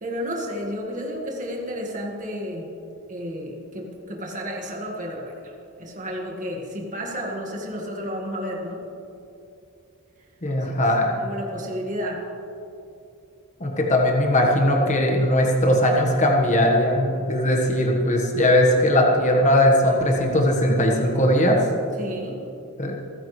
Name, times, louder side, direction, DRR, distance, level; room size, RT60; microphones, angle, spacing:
voice 1, 0.0-2.7 3.1-8.8 10.6-10.8 11.1-12.2 22.0-22.4, equal, 35° right, 0 dB, 1.8 m, -32 dB
voice 2, 10.4-11.1 13.6-21.6 22.8-23.0, left 1 dB, 35° left, 0 dB, 1.5 m, -19 dB
28.5 x 9.9 x 3.3 m, 2.7 s
head